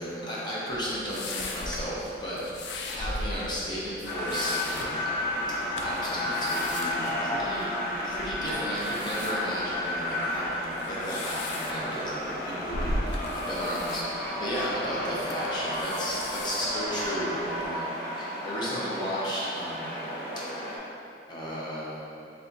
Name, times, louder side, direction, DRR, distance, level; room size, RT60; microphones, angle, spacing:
voice 1, 0.0-5.2 5.5-7.7 8.0-17.9 18.2-20.0 20.4-20.5 21.3-22.3, equal, 25° left, -7 dB, 0.8 m, -34 dB
sound 1, 0.7-17.7, left 2 dB, 70° left, 0.4 m, -39 dB
sound 2, 4.0-20.8, left 1 dB, 50° left, 1.0 m, -32 dB
3.4 x 2.8 x 3.8 m, 2.5 s
head